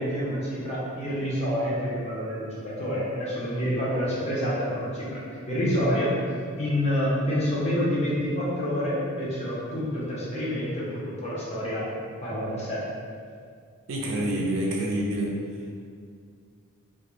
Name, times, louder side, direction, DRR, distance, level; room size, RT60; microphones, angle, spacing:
voice 1, 0.0-5.2 5.5-11.9 12.2-12.8, equal, 30° left, -7 dB, 0.6 m, -28 dB
voice 2, 13.9-15.3, right 1 dB, 60° right, -2 dB, 0.4 m, -27 dB
2.2 x 2.0 x 2.9 m, 2.2 s
head